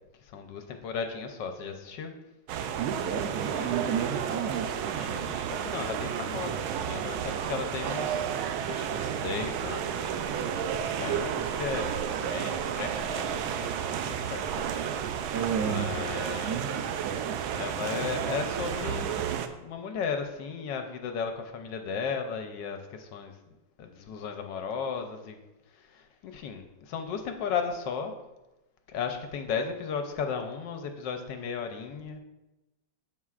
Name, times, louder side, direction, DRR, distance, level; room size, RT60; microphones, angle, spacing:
voice 1, 0.2-2.1 4.9-8.3 8.7-16.6 17.5-19.2 19.6-25.4 25.7-28.1 28.9-32.2, left 6 dB, 70° left, 6 dB, 1.3 m, -35 dB
sound 1, 2.5-19.5, right 8 dB, 90° right, 1.4 m, -32 dB
voice 2, 2.8-5.1 15.3-17.4, right 8 dB, 70° right, 3 dB, 0.9 m, -32 dB
14.0 x 4.7 x 2.4 m, 1.0 s
omnidirectional pair, 2.2 m